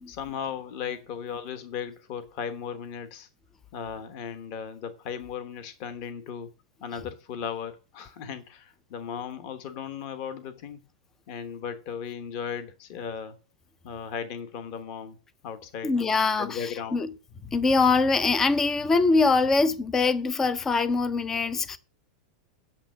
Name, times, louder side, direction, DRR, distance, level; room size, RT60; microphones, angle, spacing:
voice 1, 0.1-3.3 3.7-6.5 6.8-10.8 11.3-13.4 13.8-15.2 15.4-16.0 16.4-17.0, left 7 dB, 35° left, 1.1 m, -36 dB
voice 2, 15.8-17.1 17.4-21.8, left 4 dB, 10° left, 0.4 m, -23 dB
8.9 x 6.5 x 7.5 m
supercardioid pair, 180°, 4 cm